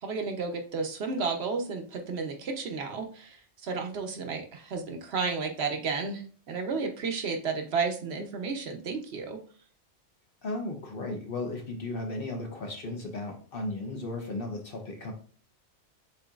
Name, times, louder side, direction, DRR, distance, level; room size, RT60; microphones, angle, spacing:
voice 1, 0.0-3.4 3.6-9.4, right 4 dB, 60° right, 4 dB, 0.9 m, -32 dB
voice 2, 10.4-15.1, left 2 dB, 55° left, 3 dB, 1.0 m, -35 dB
6.9 x 2.8 x 2.4 m, 0.43 s
omnidirectional pair, 1.3 m